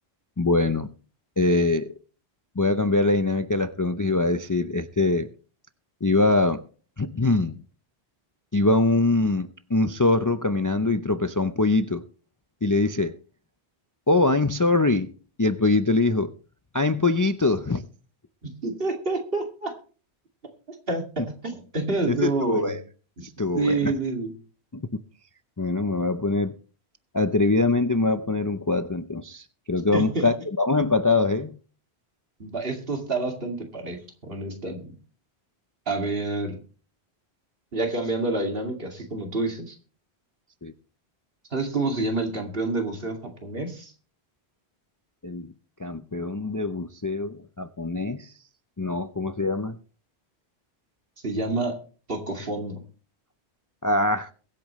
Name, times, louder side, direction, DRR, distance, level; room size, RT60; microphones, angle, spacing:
voice 1, 0.4-0.9 1.4-1.9 2.6-5.3 6.0-6.6 7.0-7.6 8.5-12.0 12.6-13.1 14.1-15.1 15.4-16.3 16.7-17.8 22.1-22.8 23.4-23.9 24.7-24.8 25.6-26.5 27.1-31.6 40.6-40.7 45.2-45.5 45.8-48.3 48.8-49.8 53.8-54.3, left 2 dB, 25° left, 0.5 m, -23 dB
voice 2, 18.4-19.8 20.9-22.8 23.2-23.3 23.5-24.3 29.9-30.3 32.4-34.9 35.9-36.6 37.7-39.8 41.5-43.9 51.2-51.8 52.1-52.8, right 3 dB, 60° right, 2.6 m, -28 dB
22.0 x 8.6 x 3.1 m
omnidirectional pair, 1.1 m